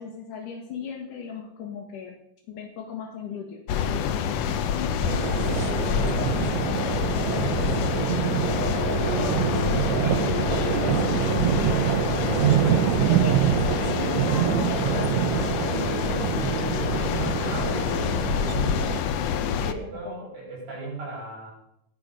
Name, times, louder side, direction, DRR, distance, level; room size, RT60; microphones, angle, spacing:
voice 1, 0.0-2.2 2.5-9.5 10.0-16.4 17.5-18.5 19.4-19.8 20.0-20.3, left 6 dB, 85° left, -1 dB, 3.3 m, -38 dB
sound 1, 3.7-19.7, left 8 dB, 70° left, 1.7 m, -27 dB
sound 2, 5.0-19.0, right 12 dB, 75° right, 1.7 m, -26 dB
voice 2, 9.8-10.6 12.2-12.9 16.9-18.3 19.1-21.5, right 2 dB, 55° right, -2 dB, 7.2 m, -38 dB
16.0 x 10.5 x 5.3 m, 0.79 s
omnidirectional pair, 3.6 m